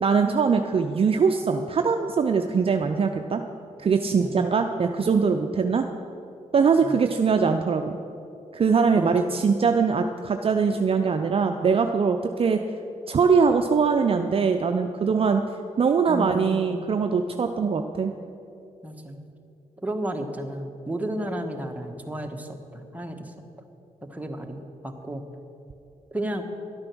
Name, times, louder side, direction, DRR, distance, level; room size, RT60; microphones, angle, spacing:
voice 1, 0.0-3.4 3.8-5.8 6.5-8.0 8.5-12.6 13.1-15.4 15.8-18.1, right 5 dB, 45° right, 6 dB, 0.6 m, -22 dB
voice 2, 8.9-9.3 16.1-16.8 18.8-19.2 19.8-23.3 24.1-25.2 26.1-26.4, right 1 dB, 10° right, 3 dB, 1.3 m, -33 dB
11.5 x 8.6 x 6.2 m, 2.7 s
cardioid pair, 65°, 14 cm